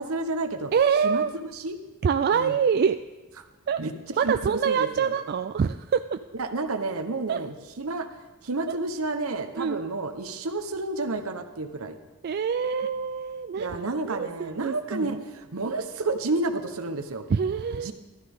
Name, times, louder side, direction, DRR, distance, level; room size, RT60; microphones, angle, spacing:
voice 1, 0.0-0.7 1.0-1.8 2.3-2.6 3.8-3.9 4.2-5.1 6.3-8.1 8.4-12.0 13.6-17.3 17.8-17.9, right 2 dB, 70° right, 8 dB, 1.0 m, -30 dB
voice 2, 0.7-1.3 2.0-3.0 3.7-3.8 4.2-6.2 7.3-7.4 8.7-8.8 9.6-9.8 12.2-15.2 17.3-17.9, right 6 dB, 45° right, 9 dB, 0.3 m, -25 dB
14.5 x 13.0 x 3.6 m, 1.2 s
head